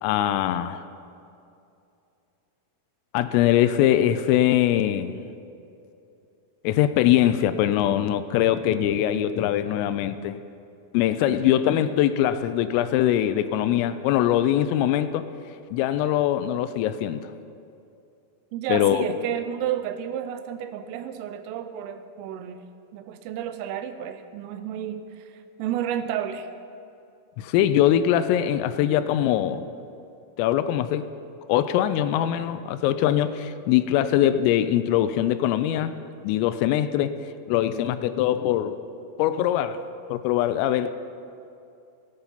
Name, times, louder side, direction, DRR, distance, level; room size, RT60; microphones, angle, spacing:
voice 1, 0.0-0.8 3.1-5.2 6.6-10.4 10.9-15.2 15.7-17.3 18.7-19.0 27.4-29.7 30.4-31.1 31.5-35.9 36.2-37.2 37.5-38.8 39.2-39.8 40.1-40.9, left 11 dB, 85° left, 11 dB, 3.1 m, -22 dB
voice 2, 18.5-22.6 22.9-26.5, right 10 dB, 80° right, 9 dB, 3.2 m, -31 dB
17.5 x 9.0 x 5.7 m, 2.6 s
omnidirectional pair, 6.0 m